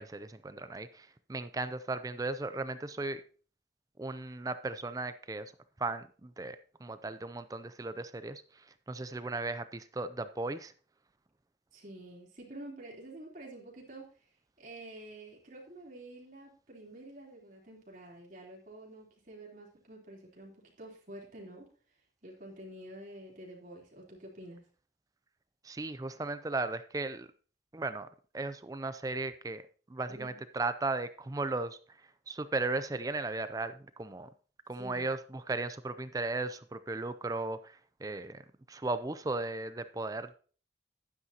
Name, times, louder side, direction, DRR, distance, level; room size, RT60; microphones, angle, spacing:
voice 1, 0.0-3.2 4.0-5.5 5.8-10.7 25.6-27.3 27.7-29.6 29.9-32.0 32.3-34.3 34.7-38.4 38.7-40.3, right 3 dB, 20° right, 12 dB, 0.4 m, -36 dB
voice 2, 11.7-14.1 14.6-21.7 22.2-24.6 30.1-30.4 34.7-35.1, right 1 dB, 45° right, -2 dB, 3.5 m, -49 dB
11.0 x 9.6 x 2.9 m, 0.40 s
head